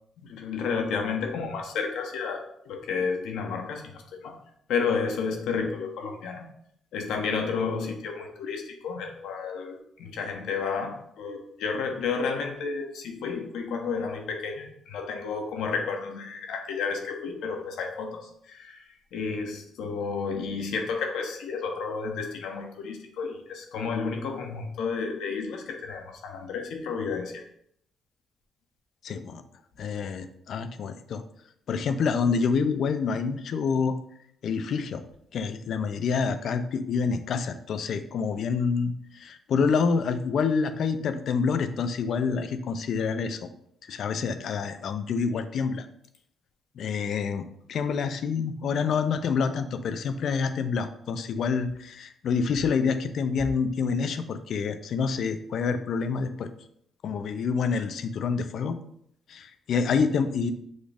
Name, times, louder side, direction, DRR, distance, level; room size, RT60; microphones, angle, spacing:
voice 1, 0.2-4.4 4.7-6.5 6.9-27.4, left 5 dB, 85° left, 3 dB, 0.8 m, -31 dB
voice 2, 29.0-29.4 29.8-31.2 31.7-34.0 34.4-35.0 35.3-43.5 43.9-45.9 46.8-56.5 57.0-58.8 59.3-60.5, left 5 dB, 65° left, 10 dB, 0.4 m, -27 dB
6.3 x 2.4 x 3.4 m, 0.70 s
cardioid pair, 90°, 0 cm